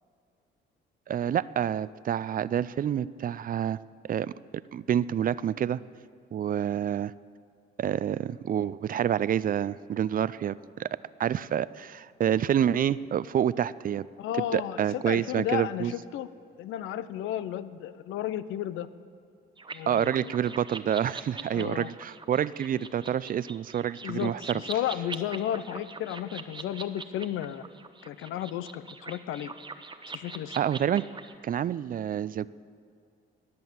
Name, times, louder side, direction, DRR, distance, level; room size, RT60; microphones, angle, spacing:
voice 1, 1.1-3.8 4.0-4.3 4.7-5.8 6.3-7.1 7.8-10.9 11.2-14.1 14.5-15.9 19.9-24.6 30.6-31.0 31.4-32.5, right 9 dB, 45° right, 18 dB, 0.4 m, -28 dB
voice 2, 14.2-16.3 16.6-18.9 19.7-20.3 21.5-21.9 24.0-27.6 28.1-29.5 30.1-30.6, left 11 dB, 85° left, 14 dB, 0.6 m, -33 dB
sound 1, 19.6-31.3, right 4 dB, 25° right, 0.9 m, -43 dB
21.0 x 7.8 x 7.2 m, 2.4 s
cardioid pair, 90°, 20 cm